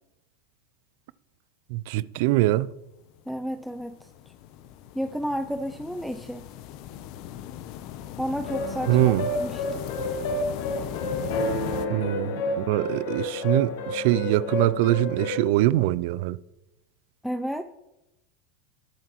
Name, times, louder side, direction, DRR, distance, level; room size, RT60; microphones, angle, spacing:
voice 1, 1.7-2.7 8.9-9.3 11.9-12.3 12.6-16.4, right 16 dB, 65° right, 0.4 m, -23 dB
sound 1, 3.1-11.9, left 11 dB, 55° left, 0.7 m, -38 dB
voice 2, 3.3-4.3 4.9-6.5 8.2-9.8 17.2-17.6, equal, ahead, 0.4 m, -32 dB
sound 2, 8.4-15.4, left 1 dB, 70° left, 1.9 m, -30 dB
20.0 x 7.3 x 3.0 m
supercardioid pair, 115°, 0 cm